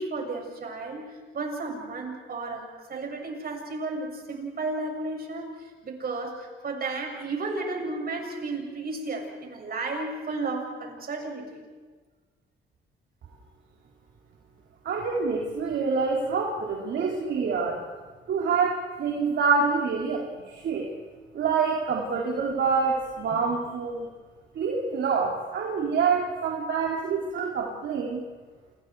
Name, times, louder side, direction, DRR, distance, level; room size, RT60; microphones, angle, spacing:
voice 1, 0.0-11.6 23.3-23.4, right 3 dB, 50° right, 1 dB, 7.3 m, -33 dB
voice 2, 14.8-17.8 18.3-20.9 21.3-24.1 24.5-28.2, right 5 dB, 65° right, -1 dB, 3.4 m, -26 dB
30.0 x 27.5 x 4.8 m, 1.4 s
cardioid pair, 90°, 20 cm